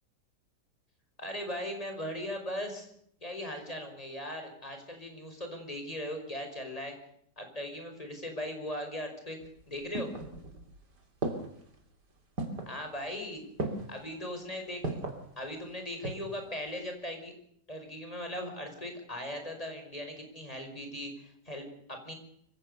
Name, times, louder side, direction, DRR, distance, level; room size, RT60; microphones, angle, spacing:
voice 1, 1.2-2.9 3.2-6.9 7.4-9.4 9.7-10.1 12.7-13.4 13.9-15.0 15.4-17.3 17.7-22.1, left 1 dB, 20° left, 4 dB, 5.5 m, -39 dB
sound 1, 9.4-10.7 11.2-11.7 12.4-12.8 13.6-14.0 14.8-15.2 15.8-16.4 16.7-16.8, right 2 dB, 90° right, 3.8 m, -36 dB
25.0 x 16.5 x 6.9 m, 0.69 s
omnidirectional pair, 1.8 m